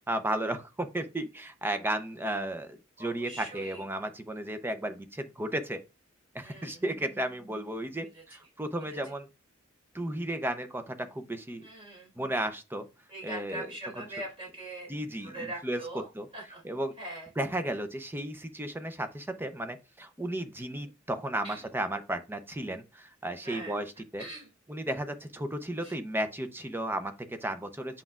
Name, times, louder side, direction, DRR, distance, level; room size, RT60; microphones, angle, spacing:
voice 1, 0.0-5.8 6.3-9.3 9.9-11.6 12.2-12.9 13.2-14.1 14.9-16.3 16.6-17.0 17.4-24.2 24.7-28.0, right 1 dB, 10° right, 0.6 m, -34 dB
voice 2, 3.0-3.8 6.4-6.8 8.1-8.2 8.9-9.0 11.6-12.1 13.1-14.9 15.2-16.1 16.3-16.6 17.0-17.3 21.4-21.6 23.4-23.8 24.2-24.5 25.8-25.9, right 1 dB, 30° right, 4.3 m, -41 dB
7.7 x 5.8 x 2.4 m
head